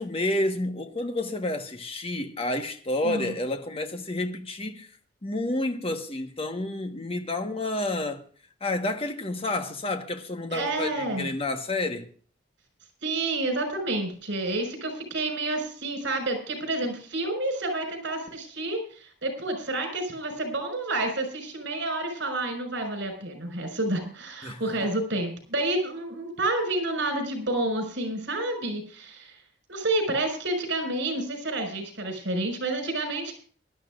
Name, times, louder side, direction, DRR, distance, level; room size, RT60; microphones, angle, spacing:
voice 1, 0.0-4.9 5.2-8.3 8.6-12.1 24.4-24.6, left 2 dB, 30° left, 1.4 m, -30 dB
voice 2, 3.0-3.3 10.5-11.3 13.0-18.8 19.2-29.3 29.7-33.4, right 2 dB, 70° right, 5.5 m, -29 dB
23.0 x 12.0 x 2.5 m
head